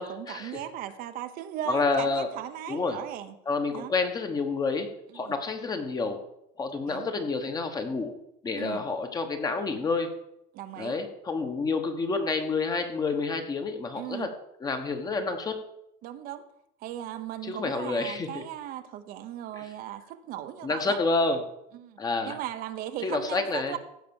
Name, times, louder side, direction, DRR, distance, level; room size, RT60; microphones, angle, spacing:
voice 1, 0.0-3.3 3.7-3.9 5.1-5.3 6.9-7.1 8.6-8.8 10.5-11.0 13.9-14.3 16.0-16.4 16.8-21.0 21.7-22.0 22.2-23.8, right 11 dB, 50° right, 9 dB, 0.9 m, -37 dB
voice 2, 1.7-2.3 2.7-3.0 3.5-6.2 6.6-8.1 8.4-10.1 10.8-14.3 14.6-15.6 17.4-18.4 19.5-19.7 20.6-21.4 22.0-22.4 23.0-23.8, left 3 dB, 20° left, 6 dB, 1.3 m, -29 dB
15.5 x 6.0 x 7.1 m, 0.80 s
cardioid pair, 165°, 19 cm